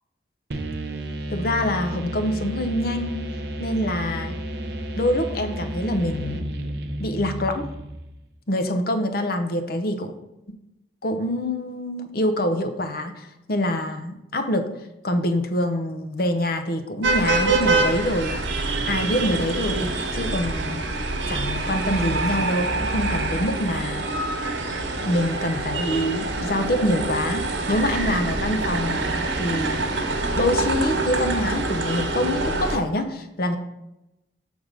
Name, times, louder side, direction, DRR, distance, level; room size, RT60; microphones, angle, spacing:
sound 1, 0.5-8.2, right 1 dB, 65° right, 0.8 m, -32 dB
voice 1, 1.3-3.2 3.6-4.3 4.9-6.4 7.0-7.7 8.5-10.1 11.0-14.7 15.0-18.4 18.8-20.8 21.3-24.3 25.0-29.8 30.3-33.6, left 1 dB, 55° left, 7 dB, 0.7 m, -25 dB
sound 2, 17.0-32.8, right 2 dB, 85° right, 1.1 m, -25 dB
6.5 x 3.5 x 6.1 m, 0.92 s
head